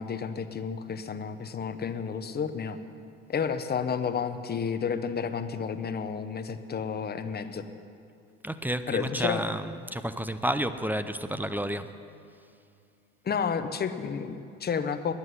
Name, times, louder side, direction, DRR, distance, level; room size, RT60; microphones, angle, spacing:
voice 1, 0.0-2.8 3.3-7.7 8.9-9.4 13.2-15.1, left 6 dB, 30° left, 10 dB, 0.9 m, -31 dB
voice 2, 8.4-11.9, right 1 dB, 5° right, 11 dB, 0.5 m, -31 dB
10.5 x 9.6 x 9.9 m, 2.5 s
supercardioid pair, 90°, 34 cm